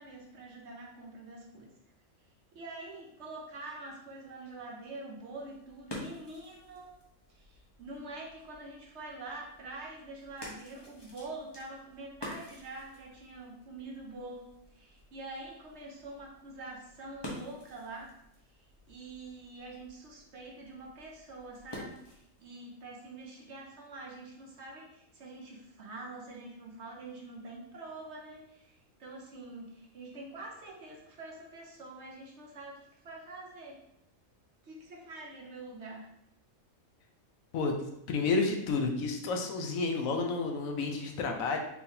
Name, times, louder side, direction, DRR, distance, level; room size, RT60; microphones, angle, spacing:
voice 1, 0.0-1.7 2.5-6.9 7.3-14.4 14.7-18.1 18.6-33.8 34.6-36.1, right 2 dB, 60° right, -1 dB, 0.9 m, -45 dB
sound 1, 5.3-22.5, left 1 dB, 25° left, 0.7 m, -50 dB
voice 2, 38.1-41.6, left 4 dB, 75° left, 3 dB, 1.0 m, -30 dB
4.5 x 3.5 x 2.7 m, 0.80 s
omnidirectional pair, 1.5 m